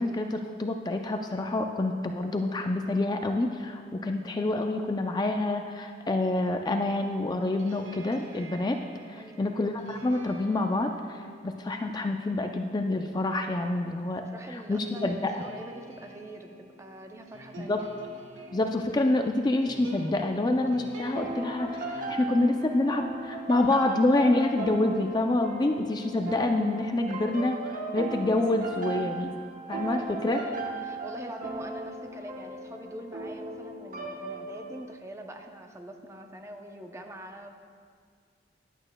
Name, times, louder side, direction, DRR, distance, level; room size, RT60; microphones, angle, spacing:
voice 1, 0.0-8.8 9.1-14.2 14.5-15.4 17.6-17.8 18.5-29.3 29.7-30.4, left 2 dB, 20° left, 4 dB, 0.4 m, -27 dB
sound 1, 7.5-23.6, equal, 85° right, 1.2 m, -48 dB
voice 2, 9.1-9.5 14.3-17.9 29.9-37.6, right 1 dB, 15° right, 4 dB, 0.6 m, -44 dB
sound 2, 21.1-34.8, right 2 dB, 45° right, 1.0 m, -37 dB
15.0 x 11.0 x 2.2 m, 2.1 s
head